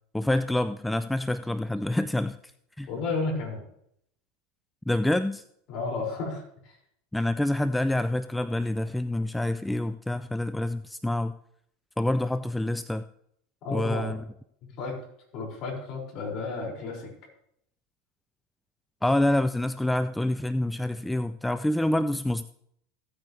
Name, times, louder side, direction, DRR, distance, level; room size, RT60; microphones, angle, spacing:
voice 1, 0.1-2.4 2.8-2.9 4.9-5.4 7.1-11.3 12.0-13.0 13.7-14.2 19.0-22.4, left 1 dB, 5° left, 12 dB, 0.4 m, -27 dB
voice 2, 2.9-3.6 5.7-6.8 13.6-14.1 14.6-14.9 15.3-17.1, left 3 dB, 50° left, -2 dB, 5.8 m, -32 dB
15.5 x 9.0 x 3.3 m, 0.70 s
hypercardioid pair, 90°, 0 cm